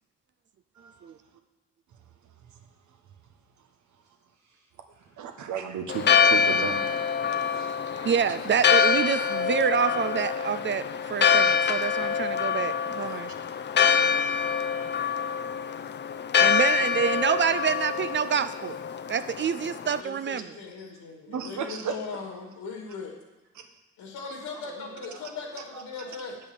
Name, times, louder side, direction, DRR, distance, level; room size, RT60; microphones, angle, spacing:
voice 1, 4.3-5.2 15.4-15.8 24.5-26.2, right 4 dB, 85° right, -1 dB, 2.2 m, -50 dB
voice 2, 5.2-6.8 7.4-8.1 21.3-22.0 23.5-23.7, right 7 dB, 70° right, 6 dB, 1.2 m, -34 dB
Church bell, 5.9-20.0, left 6 dB, 35° left, 0.5 m, -25 dB
voice 3, 8.0-13.3 16.4-18.8 19.1-20.5, right 7 dB, 40° right, 12 dB, 0.4 m, -27 dB
voice 4, 19.9-23.2 24.0-26.4, left 5 dB, 85° left, 2 dB, 2.2 m, -39 dB
9.1 x 5.4 x 7.2 m, 1.1 s
cardioid pair, 90°, 30 cm